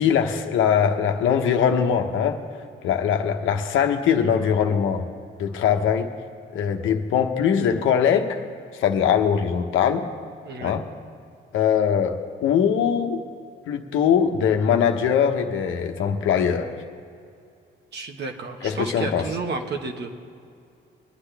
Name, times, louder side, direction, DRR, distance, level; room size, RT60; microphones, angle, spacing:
voice 1, 0.0-2.4 2.8-5.0 5.4-6.1 6.5-8.4 8.7-10.1 10.6-10.9 11.5-13.2 13.7-16.7 18.6-19.3, left 8 dB, 80° left, 4 dB, 1.0 m, -21 dB
voice 2, 10.4-10.8 17.9-20.1, right 4 dB, 60° right, 3 dB, 1.4 m, -31 dB
22.5 x 9.8 x 3.4 m, 2.4 s
cardioid pair, 90°, 20 cm